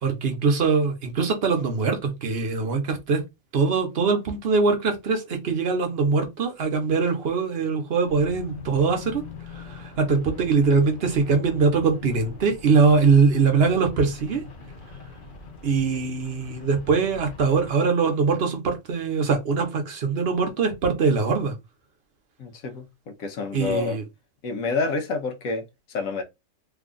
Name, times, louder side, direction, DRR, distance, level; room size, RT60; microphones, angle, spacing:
voice 1, 0.0-3.2 3.5-9.2 9.5-14.4 15.6-21.5 23.5-24.0, right 4 dB, 50° right, 1.0 m, -22 dB
sound 1, 8.0-17.7, left 4 dB, 45° left, 0.8 m, -41 dB
voice 2, 22.4-24.0 24.4-26.2, left 4 dB, 80° left, 1.2 m, -28 dB
3.3 x 2.3 x 3.8 m
omnidirectional pair, 1.4 m